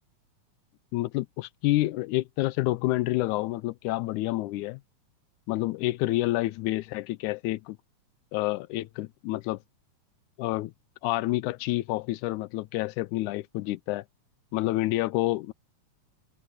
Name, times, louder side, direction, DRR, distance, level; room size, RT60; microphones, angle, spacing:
voice 1, 0.9-4.8 5.5-7.8 8.3-9.6 10.4-10.7 11.0-14.0 14.5-15.5, left 18 dB, 85° left, 2.0 m, -28 dB
omnidirectional pair, 3.4 m